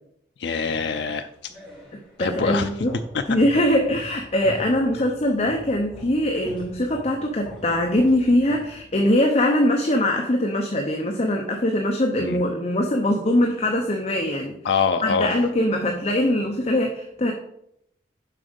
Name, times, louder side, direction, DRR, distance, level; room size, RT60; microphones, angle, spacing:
voice 1, 0.4-1.3 2.2-2.7 3.1-3.2 12.2-12.4 14.6-15.4, left 5 dB, 70° left, 7 dB, 0.4 m, -24 dB
sound 1, 1.1-9.2, right 1 dB, 5° left, 3.2 m, -42 dB
voice 2, 2.2-2.9 3.3-14.5 15.0-17.3, left 1 dB, 35° left, 2 dB, 0.8 m, -22 dB
7.4 x 5.2 x 5.3 m, 0.75 s
head